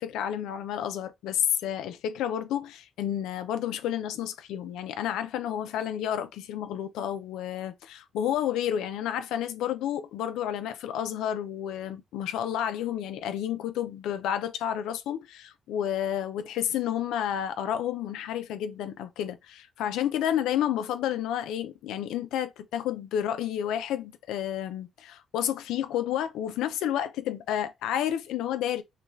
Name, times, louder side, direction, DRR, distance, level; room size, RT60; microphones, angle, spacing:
voice 1, 0.0-28.8, left 10 dB, 90° left, 0.7 m, -30 dB
5.8 x 2.5 x 3.1 m
cardioid pair, 90°, 0 cm